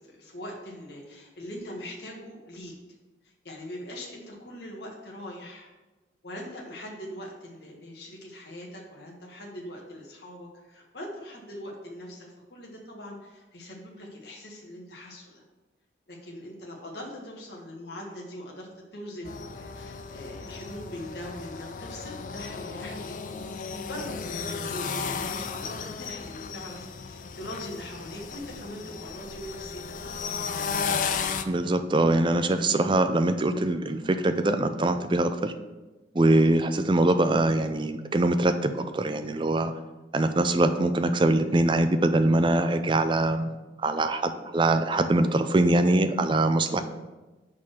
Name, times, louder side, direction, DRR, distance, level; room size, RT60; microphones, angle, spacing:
voice 1, 0.0-2.7 3.2-5.7 6.2-15.4 16.1-23.4 23.9-30.3 46.7-46.8, left 1 dB, 65° left, -2 dB, 1.4 m, -42 dB
sound 1, 19.3-31.4, left 5 dB, 45° left, 0.4 m, -34 dB
voice 2, 31.5-35.5 36.1-39.7 40.1-46.8, right 2 dB, 25° right, 9 dB, 0.4 m, -23 dB
6.1 x 4.2 x 6.3 m, 1.1 s
head